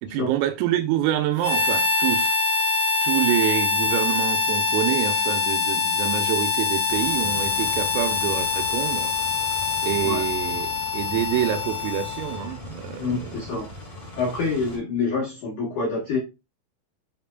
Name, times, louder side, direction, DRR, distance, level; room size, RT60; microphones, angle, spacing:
voice 1, 0.0-2.3 3.0-9.2 9.8-13.4, right 11 dB, 90° right, 3.5 m, -26 dB
Harmonica, 1.4-12.5, left 5 dB, 5° left, 1.6 m, -24 dB
sound 1, 6.9-14.8, equal, 30° left, 2.6 m, -40 dB
voice 2, 13.0-13.7 14.2-16.2, left 4 dB, 85° left, 1.7 m, -27 dB
9.9 x 4.2 x 2.3 m
omnidirectional pair, 5.8 m